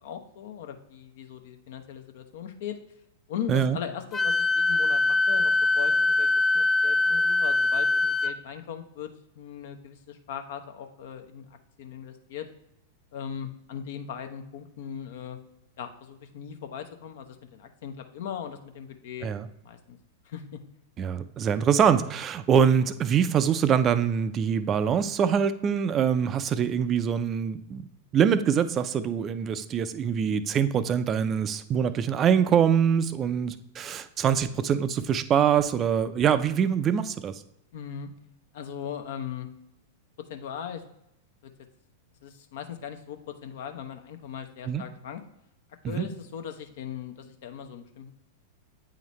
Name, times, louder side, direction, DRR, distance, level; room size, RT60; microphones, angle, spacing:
voice 1, 0.0-2.8 3.3-9.1 9.4-12.5 13.1-15.4 15.8-19.3 19.6-20.0 20.2-20.4 37.7-38.1 38.5-39.5 40.3-40.8 42.2-45.2 45.9-48.1, left 8 dB, 65° left, 7 dB, 0.7 m, -39 dB
Wind instrument woodwind instrument, 4.1-8.3, left 3 dB, 25° left, 0.5 m, -23 dB
voice 2, 21.0-27.9 28.1-37.4 44.6-44.8 45.8-46.1, right 8 dB, 30° right, 12 dB, 0.4 m, -24 dB
8.4 x 3.9 x 3.1 m, 0.81 s
hypercardioid pair, 100°, 0 cm